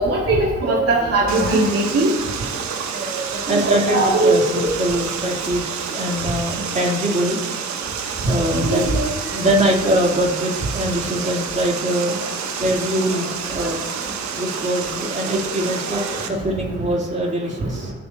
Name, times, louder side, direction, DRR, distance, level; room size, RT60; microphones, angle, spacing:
voice 1, 0.0-2.1 3.5-4.7 8.7-9.1, right 2 dB, 50° right, -5 dB, 2.7 m, -19 dB
Water, 1.3-16.3, right 7 dB, 70° right, 1.3 m, -29 dB
voice 2, 3.5-7.5 8.2-8.8 9.3-12.2 12.6-13.8 14.3-17.9, equal, 25° right, -2 dB, 3.6 m, -23 dB
23.0 x 9.2 x 3.0 m, 1.2 s
cardioid pair, 90°, 30 cm